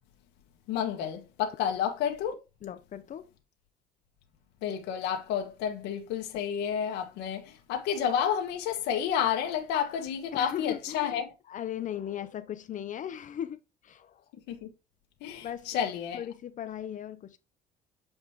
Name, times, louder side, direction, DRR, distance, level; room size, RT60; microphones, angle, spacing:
voice 1, 0.7-2.4 4.6-11.3 14.5-14.7 15.2-16.2, left 8 dB, 90° left, 1.5 m, -30 dB
voice 2, 2.6-3.3 10.3-11.2 11.5-14.2 15.4-15.8 16.1-17.4, left 10 dB, 50° left, 0.7 m, -38 dB
7.9 x 5.3 x 2.9 m
cardioid pair, 110°, 17 cm